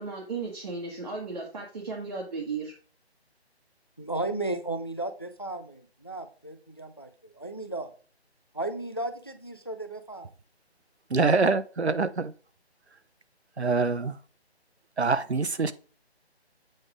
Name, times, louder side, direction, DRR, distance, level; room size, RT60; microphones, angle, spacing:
voice 1, 0.0-2.7, right 4 dB, 40° right, 1.7 m, -35 dB
voice 2, 4.0-7.9 8.5-10.3, right 2 dB, 25° left, 0.5 m, -35 dB
voice 3, 11.1-12.3 13.6-14.2 15.0-15.7, right 4 dB, 80° right, 0.9 m, -25 dB
7.8 x 3.8 x 4.9 m
figure-of-eight pair, 155°, 33 cm